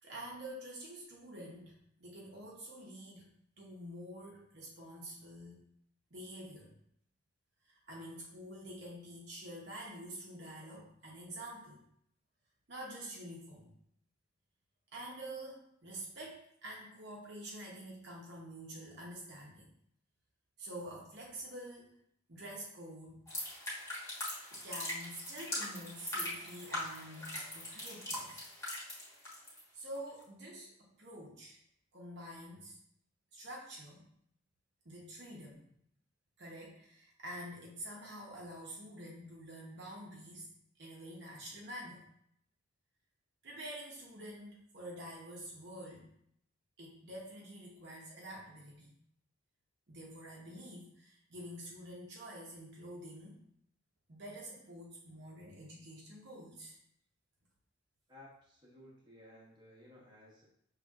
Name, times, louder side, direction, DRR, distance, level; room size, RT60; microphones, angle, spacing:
voice 1, 0.0-1.7 2.0-3.3 3.6-5.6 6.1-6.7 7.6-11.8 12.7-13.7 14.9-19.7 20.6-22.0 22.3-23.3 24.5-28.4 29.7-31.6 31.9-32.8 33.3-34.0 34.8-35.6 36.4-40.5 40.8-42.0 43.4-46.1 46.8-48.9 49.9-53.4 54.1-56.8, right 1 dB, 55° right, -3 dB, 0.9 m, -47 dB
sound 1, 23.3-29.6 29.9-30.2, left 1 dB, 15° left, 1.3 m, -41 dB
voice 2, 58.1-60.5, left 1 dB, 20° right, -5 dB, 1.1 m, -57 dB
6.1 x 3.3 x 2.4 m, 0.72 s
head